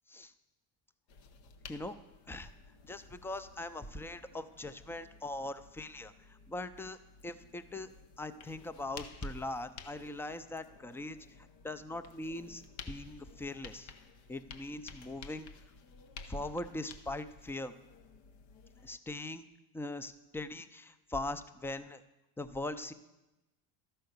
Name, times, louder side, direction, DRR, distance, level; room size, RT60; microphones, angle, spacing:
sound 1, 1.1-19.0, left 5 dB, 65° left, 1.0 m, -54 dB
voice 1, 2.8-7.0 7.2-7.9 8.2-13.9 14.3-15.5 16.3-17.8 18.8-19.5 19.7-22.0 22.4-22.9, left 2 dB, 5° left, 12 dB, 0.4 m, -41 dB
12.5 x 5.7 x 6.6 m, 1.0 s
supercardioid pair, 75°, 48 cm